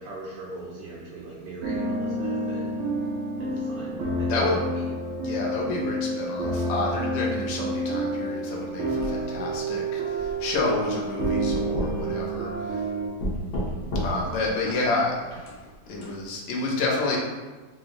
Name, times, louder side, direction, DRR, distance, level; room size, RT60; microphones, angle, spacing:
voice 1, 0.0-2.8 3.4-4.8 5.6-5.8 14.6-15.0, right 2 dB, 80° right, -6 dB, 1.3 m, -40 dB
sound 1, 1.6-13.1, right 2 dB, 60° right, 0.8 m, -29 dB
voice 2, 4.3-4.6 5.2-12.8 14.0-15.1 15.9-17.2, left 3 dB, 85° left, -1 dB, 1.3 m, -29 dB
sound 2, 9.0-9.6 10.2-10.8 11.2-12.8 13.2-14.5 15.2-16.1, equal, 55° left, 0.9 m, -32 dB
3.3 x 2.9 x 2.5 m, 1.3 s
omnidirectional pair, 1.9 m